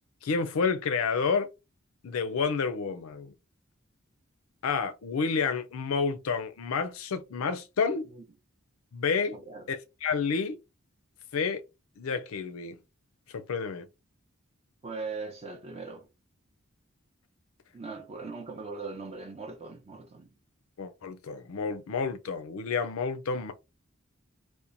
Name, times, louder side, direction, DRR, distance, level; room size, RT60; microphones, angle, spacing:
voice 1, 0.2-1.5 2.0-3.3 4.6-8.1 8.9-9.4 9.7-10.6 11.3-11.6 12.0-12.8 13.3-13.9 20.8-23.5, left 5 dB, 80° left, 0.5 m, -30 dB
voice 2, 9.3-9.7 14.8-16.1 17.7-20.4, right 4 dB, 30° right, 0.6 m, -40 dB
2.9 x 2.2 x 2.5 m
head